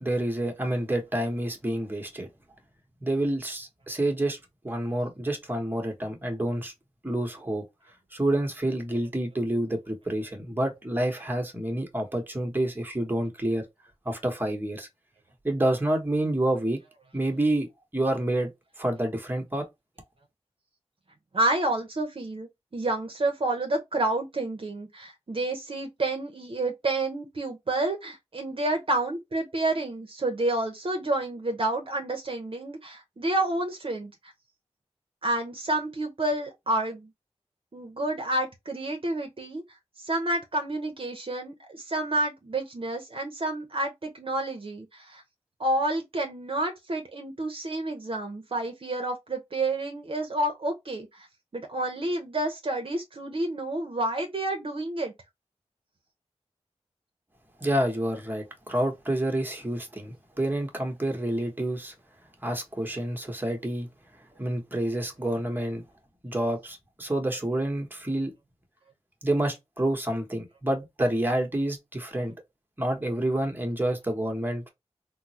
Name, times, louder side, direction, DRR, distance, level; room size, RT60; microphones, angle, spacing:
voice 1, 0.0-2.3 3.0-4.4 4.6-6.7 7.0-7.6 8.1-13.6 14.0-14.9 15.4-16.8 17.1-17.7 17.9-18.5 18.8-19.6 57.6-61.9 62.4-63.9 64.4-65.8 66.2-68.3 69.2-72.3 72.8-74.7, right 1 dB, 15° right, 1.0 m, -28 dB
voice 2, 21.3-34.3 35.2-37.1 37.7-39.6 40.0-45.2 45.6-51.3 51.5-55.1, right 2 dB, 50° right, 0.7 m, -29 dB
3.6 x 2.0 x 2.8 m
wide cardioid pair, 90°, 11 cm